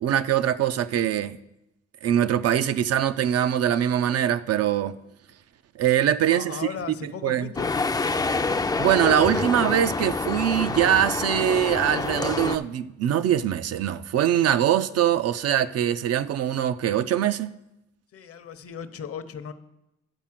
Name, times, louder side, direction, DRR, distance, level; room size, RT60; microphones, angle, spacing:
voice 1, 0.0-1.4 2.0-5.0 5.8-6.6 7.0-7.5 8.8-17.5, right 10 dB, 55° right, 0.5 m, -23 dB
voice 2, 6.3-7.8 18.1-19.5, left 7 dB, 50° left, 0.8 m, -36 dB
sound 1, 7.6-12.6, left 3 dB, 15° left, 0.4 m, -27 dB
10.5 x 4.2 x 7.4 m
cardioid pair, 90°, 30 cm